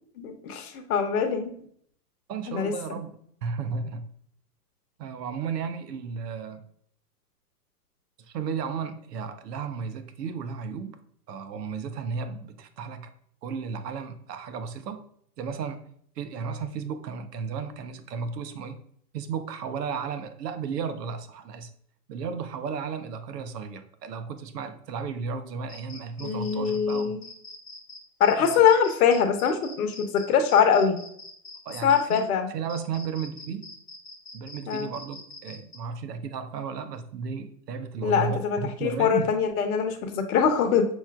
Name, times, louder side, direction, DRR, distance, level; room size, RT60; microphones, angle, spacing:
voice 1, 0.2-1.5 2.5-2.7 26.2-27.2 28.2-31.0 31.8-32.5 34.7-34.9 38.0-40.9, left 7 dB, 65° left, 6 dB, 0.9 m, -23 dB
voice 2, 2.3-4.1 5.0-6.6 8.3-11.0 11.3-13.1 13.4-15.0 15.4-15.8 16.2-18.8 19.1-21.7 22.1-27.1 28.4-28.6 31.7-33.7 34.3-39.4, right 6 dB, 80° right, 10 dB, 0.7 m, -34 dB
sound 1, 25.7-32.2 32.7-35.8, left 2 dB, 10° left, 0.5 m, -44 dB
5.6 x 3.0 x 2.3 m, 0.64 s
hypercardioid pair, 120°, 48 cm